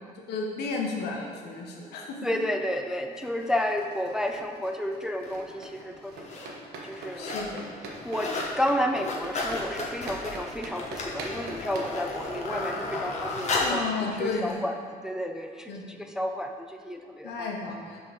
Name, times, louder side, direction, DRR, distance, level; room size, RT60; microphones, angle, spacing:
voice 1, 0.1-2.4 7.1-7.6 13.6-14.6 15.7-16.0 17.2-18.0, left 3 dB, 75° left, 0 dB, 1.0 m, -33 dB
voice 2, 2.2-6.1 6.8-7.3 8.0-13.8 14.2-14.8 15.0-17.5, left 1 dB, 5° right, 4 dB, 0.3 m, -31 dB
sound 1, 3.1-14.1, right 2 dB, 80° right, 0.9 m, -43 dB
sound 2, 5.2-5.4 6.1-6.5 6.8-7.5 7.8-8.5 8.9-13.8 14.5-14.6, left 3 dB, 40° left, 1.1 m, -33 dB
5.3 x 3.7 x 5.2 m, 2.1 s
cardioid pair, 110°, 17 cm